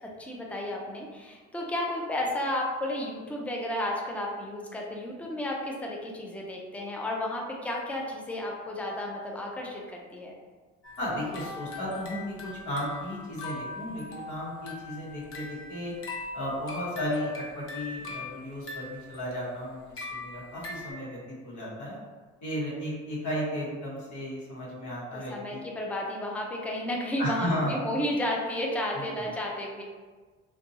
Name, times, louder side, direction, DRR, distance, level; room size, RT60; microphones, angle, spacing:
voice 1, 0.0-10.3 25.1-29.8, left 1 dB, 5° left, -1 dB, 0.4 m, -32 dB
sound 1, 10.8-20.9, left 3 dB, 45° left, 0.6 m, -41 dB
voice 2, 11.0-15.9 16.3-22.0 22.4-25.6 27.2-27.8 28.9-29.3, equal, 75° left, -6 dB, 1.0 m, -34 dB
2.6 x 2.2 x 2.7 m, 1.4 s
cardioid pair, 90°, 30 cm